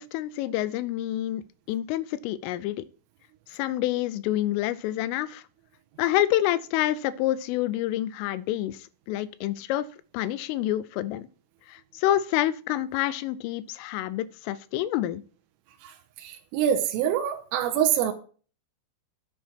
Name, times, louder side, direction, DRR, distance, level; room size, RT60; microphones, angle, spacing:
voice 1, 0.0-1.4 1.7-2.9 3.5-5.4 6.0-9.9 10.1-11.3 11.7-15.2, left 13 dB, 85° left, 3.1 m, -28 dB
voice 2, 15.8-18.1, right 9 dB, 90° right, 3.6 m, -26 dB
11.0 x 7.5 x 4.4 m
omnidirectional pair, 5.8 m